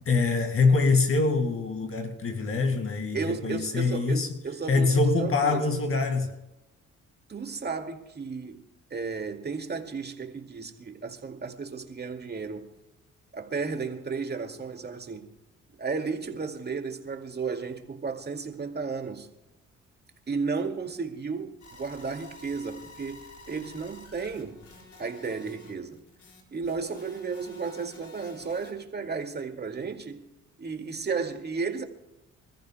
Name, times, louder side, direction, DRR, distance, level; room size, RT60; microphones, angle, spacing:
voice 1, 0.1-4.3 4.7-6.3, left 3 dB, 45° left, 2.0 m, -24 dB
voice 2, 3.1-5.8 7.3-12.7 13.3-15.3 15.8-19.3 20.3-24.6 25.0-26.0 26.5-30.3 30.6-31.8, right 4 dB, 35° right, 2.2 m, -33 dB
sound 1, 21.6-28.7, left 2 dB, 70° left, 4.9 m, -50 dB
27.0 x 14.5 x 2.3 m
cardioid pair, 90°, 30 cm